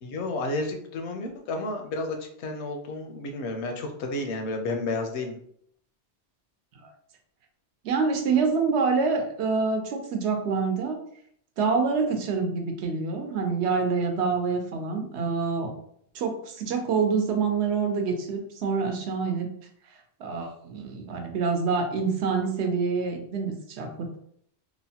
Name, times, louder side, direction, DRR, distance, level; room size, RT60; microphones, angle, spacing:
voice 1, 0.0-5.4, left 2 dB, 80° left, 4 dB, 0.9 m, -31 dB
voice 2, 7.8-11.0 11.6-15.7 16.1-19.5 20.2-24.2, right 5 dB, 75° right, 4 dB, 0.9 m, -26 dB
2.9 x 2.0 x 2.7 m, 0.66 s
omnidirectional pair, 1.1 m